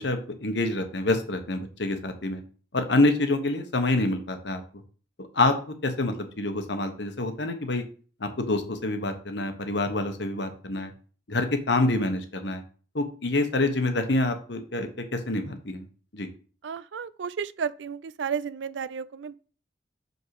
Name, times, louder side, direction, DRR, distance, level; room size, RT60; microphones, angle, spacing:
voice 1, 0.0-2.4 2.7-4.6 5.3-7.8 8.2-10.9 11.3-12.6 12.9-15.8 16.1-16.3, left 2 dB, 70° left, 1.2 m, -27 dB
voice 2, 16.6-19.4, right 6 dB, 80° right, 0.4 m, -32 dB
6.5 x 5.4 x 4.8 m
head